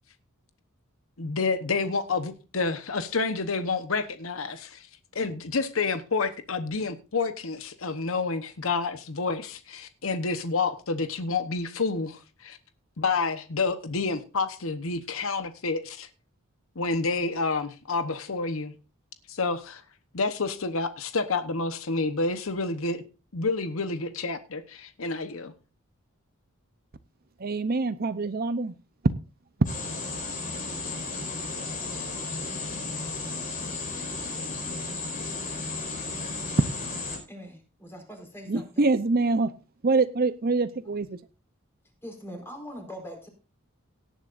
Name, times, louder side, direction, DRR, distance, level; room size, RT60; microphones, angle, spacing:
voice 1, 1.2-4.9 5.1-12.6 13.0-16.1 16.8-18.7 19.3-19.8 20.1-23.0 23.3-25.5, left 4 dB, 70° left, 1.0 m, -29 dB
voice 2, 27.4-28.7 38.5-39.5 39.8-41.2, right 3 dB, 45° right, 0.7 m, -25 dB
sound 1, 29.7-37.2, left 3 dB, 40° left, 4.8 m, -34 dB
voice 3, 37.3-38.9 42.0-43.3, equal, 10° left, 4.6 m, -42 dB
18.0 x 10.0 x 2.6 m
head